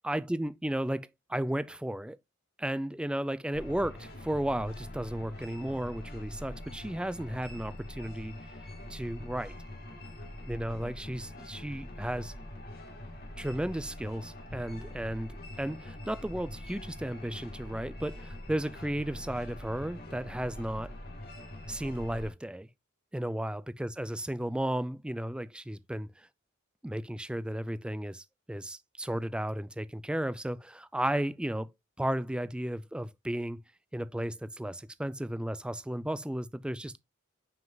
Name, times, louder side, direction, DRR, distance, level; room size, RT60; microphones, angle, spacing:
voice 1, 0.0-2.2 2.6-8.3 8.9-9.6 10.5-12.3 13.4-20.9 21.7-22.7 23.1-26.3 26.8-31.7 32.0-33.6 33.9-37.0, right 1 dB, 5° right, 0.3 m, -34 dB
sound 1, 3.5-22.3, left 1 dB, 50° left, 2.2 m, -44 dB
7.1 x 6.3 x 2.3 m
head